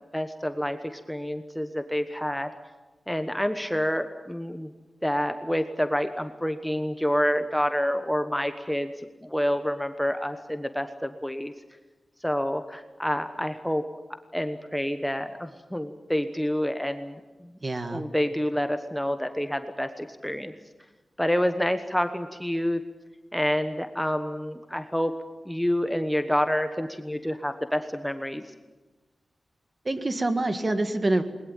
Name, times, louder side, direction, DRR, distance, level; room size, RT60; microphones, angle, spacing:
voice 1, 0.1-2.5 3.1-4.7 5.0-8.9 9.2-11.5 12.2-13.8 14.3-17.5 17.9-20.5 21.2-22.8 23.3-25.1 25.4-28.4, equal, 5° left, 8 dB, 1.2 m, -28 dB
voice 2, 17.6-18.1 29.9-31.2, right 2 dB, 30° right, 8 dB, 1.9 m, -26 dB
20.5 x 20.0 x 9.0 m, 1.2 s
wide cardioid pair, 85°, 0 cm